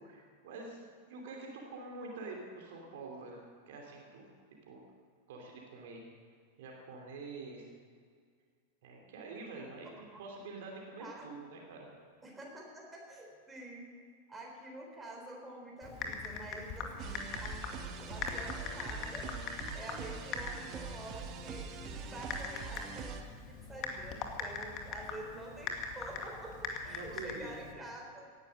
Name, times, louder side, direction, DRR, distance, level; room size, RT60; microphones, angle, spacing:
voice 1, 0.0-4.3 4.7-4.9 5.3-6.0 6.6-7.7 8.8-11.9 26.9-27.6, right 3 dB, 55° right, 0 dB, 2.8 m, -46 dB
voice 2, 9.9-10.2 11.0-11.4 12.2-13.9 14.3-17.6 17.9-19.3 19.7-23.2 23.5-28.3, right 1 dB, 10° right, -1 dB, 4.0 m, -48 dB
Typing, 15.8-27.7, left 5 dB, 35° left, 2.1 m, -42 dB
sound 1, 17.0-23.2, right 6 dB, 35° right, 1.5 m, -44 dB
18.0 x 11.0 x 6.3 m, 2.1 s
figure-of-eight pair, 90°, 0 cm